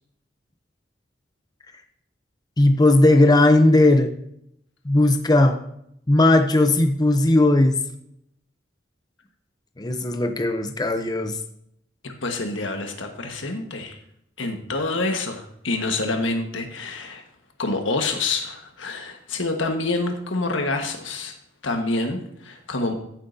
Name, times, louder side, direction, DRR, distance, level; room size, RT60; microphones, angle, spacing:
voice 1, 2.6-4.1 4.8-5.6 6.1-7.8 9.8-11.4, left 2 dB, 20° left, 6 dB, 0.6 m, -17 dB
voice 2, 12.0-14.0 14.4-17.2 17.6-21.3 21.6-22.9, left 2 dB, 85° left, 4 dB, 1.4 m, -27 dB
14.5 x 7.5 x 2.7 m, 0.75 s
head